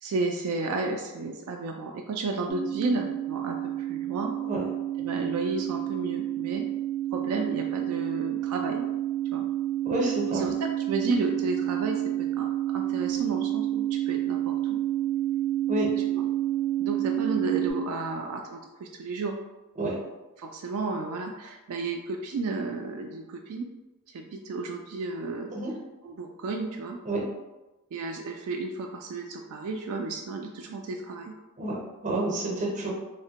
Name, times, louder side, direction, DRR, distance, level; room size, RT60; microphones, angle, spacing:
voice 1, 0.0-4.3 5.0-6.6 7.1-8.8 9.3-9.4 10.3-10.5 10.9-12.5 12.7-14.8 16.1-16.2 16.8-19.3 20.4-23.7 24.1-25.5 26.0-27.0 27.9-31.3, right 3 dB, 80° right, 2 dB, 0.3 m, -32 dB
sound 1, 2.5-17.7, right 13 dB, 5° left, 0.3 m, -29 dB
voice 2, 9.8-10.4 15.7-15.9 19.8-20.0 25.5-25.7 27.0-27.3 31.6-32.9, right 1 dB, 35° right, -2 dB, 0.6 m, -29 dB
3.1 x 2.1 x 2.8 m, 1.1 s
head